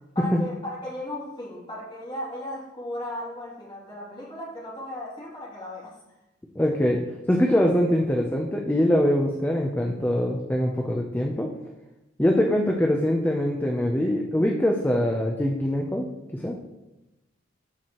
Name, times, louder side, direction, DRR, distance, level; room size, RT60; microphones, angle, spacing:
voice 1, 0.1-6.0, left 1 dB, 25° left, -7 dB, 2.7 m, -36 dB
voice 2, 6.6-7.0 7.3-11.5 12.2-16.1 16.3-16.6, equal, 10° left, 0 dB, 0.6 m, -23 dB
13.0 x 4.7 x 3.0 m, 0.98 s
head